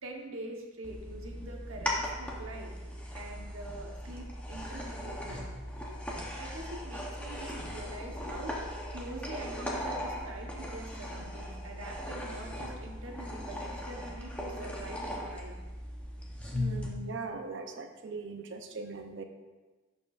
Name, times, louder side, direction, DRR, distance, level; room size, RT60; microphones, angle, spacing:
voice 1, 0.0-2.7 3.1-5.4 6.4-15.5, right 2 dB, 75° right, 1 dB, 1.0 m, -44 dB
sound 1, 0.8-16.9, left 1 dB, 5° left, 0.7 m, -38 dB
voice 2, 16.5-19.2, right 4 dB, 60° right, 6 dB, 0.5 m, -40 dB
10.5 x 4.5 x 2.4 m, 1.3 s
head